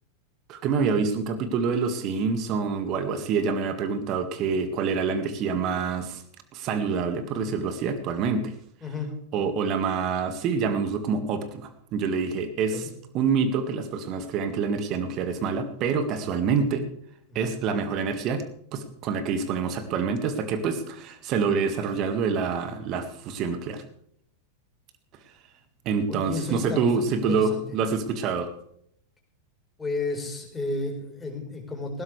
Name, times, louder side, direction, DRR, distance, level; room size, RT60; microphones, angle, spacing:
voice 1, 0.5-6.2 6.5-8.5 9.3-12.9 13.1-16.8 17.4-18.4 18.7-23.8 25.9-28.5, right 5 dB, 35° right, 9 dB, 1.8 m, -26 dB
voice 2, 8.8-9.1 12.7-12.9 17.3-17.5 26.1-27.6 29.8-32.0, left 2 dB, 10° left, 1 dB, 4.3 m, -32 dB
19.0 x 16.5 x 3.3 m, 0.68 s
figure-of-eight pair, 90°, 0 cm